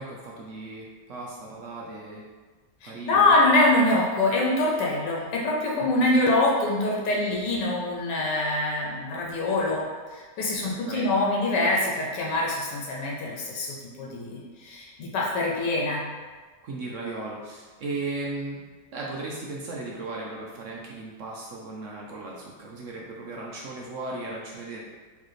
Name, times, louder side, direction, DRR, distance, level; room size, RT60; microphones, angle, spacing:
voice 1, 0.0-2.2 2.8-3.4 10.6-11.1 16.6-18.6 18.9-24.8, right 2 dB, 60° right, -3 dB, 0.8 m, -36 dB
voice 2, 2.8-16.0, left 2 dB, 90° left, -3 dB, 1.4 m, -24 dB
4.7 x 3.3 x 3.1 m, 1.4 s
omnidirectional pair, 1.8 m